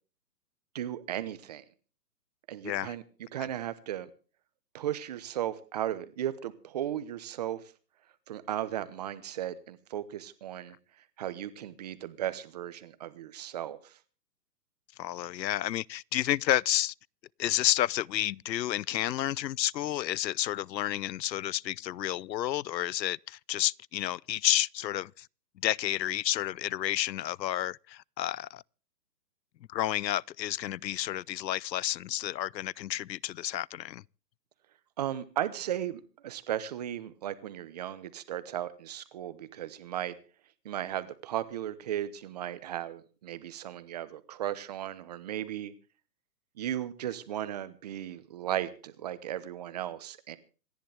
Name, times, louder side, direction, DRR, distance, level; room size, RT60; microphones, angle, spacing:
voice 1, 0.7-1.6 2.5-3.0 3.3-4.1 4.7-7.6 8.3-10.8 11.2-14.0 35.0-40.1 40.6-45.7 46.6-50.4, right 11 dB, 25° right, 1.0 m, -36 dB
voice 2, 2.6-3.0 3.4-3.5 15.0-16.9 17.4-25.3 25.6-28.6 29.7-34.0, left 13 dB, 85° left, 0.6 m, -30 dB
27.0 x 10.5 x 3.4 m
hypercardioid pair, 165°, 50 cm